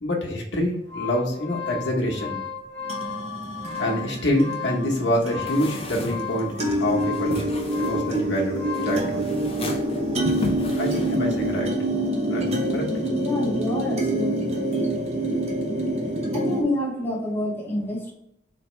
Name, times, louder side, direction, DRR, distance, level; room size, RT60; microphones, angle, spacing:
voice 1, 0.0-2.4 3.8-7.4 7.8-9.3 10.8-11.7 12.3-12.4 12.7-12.8, equal, 90° left, -2 dB, 1.0 m, -26 dB
sound 1, 0.6-9.1, left 6 dB, 80° right, 1.5 m, -35 dB
sound 2, 2.8-16.6, right 1 dB, 40° right, 0.9 m, -27 dB
sound 3, 5.5-11.6, left 2 dB, 35° left, 0.6 m, -35 dB
voice 2, 13.1-15.0 15.5-15.6 16.1-18.1, left 1 dB, 10° left, -3 dB, 1.2 m, -29 dB
4.2 x 2.9 x 3.1 m, 0.79 s
head